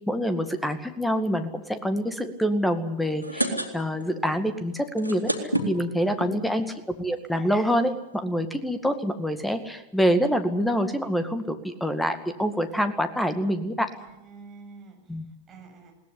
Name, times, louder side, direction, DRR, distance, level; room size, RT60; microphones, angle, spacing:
voice 1, 0.1-5.3 5.7-6.7 7.0-13.9 15.1-15.2, equal, 5° left, 10 dB, 2.0 m, -26 dB
sound 1, 3.0-4.1 4.4-4.5 4.8-6.3 7.0-7.1 7.4-7.5 7.6-7.9, right 1 dB, 85° left, 2.6 m, -28 dB
voice 2, 6.3-6.8 13.9-15.9, right 4 dB, 20° right, 2 dB, 7.3 m, -48 dB
21.0 x 18.0 x 9.9 m, 0.89 s
figure-of-eight pair, 90°, 0 cm